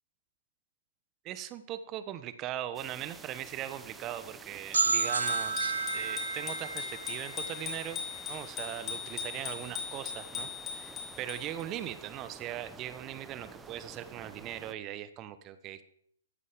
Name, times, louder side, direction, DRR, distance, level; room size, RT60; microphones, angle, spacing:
voice 1, 1.2-8.0 8.3-15.9, right 11 dB, 30° right, 13 dB, 1.2 m, -40 dB
sound 1, 2.7-14.7, right 4 dB, 10° right, 1.1 m, -50 dB
sound 2, 4.7-8.4, right 4 dB, 75° right, 1.0 m, -32 dB
Bicycle bell, 5.0-11.6, left 7 dB, 25° left, 3.4 m, -40 dB
14.5 x 11.5 x 5.2 m, 0.67 s
figure-of-eight pair, 120°, 0 cm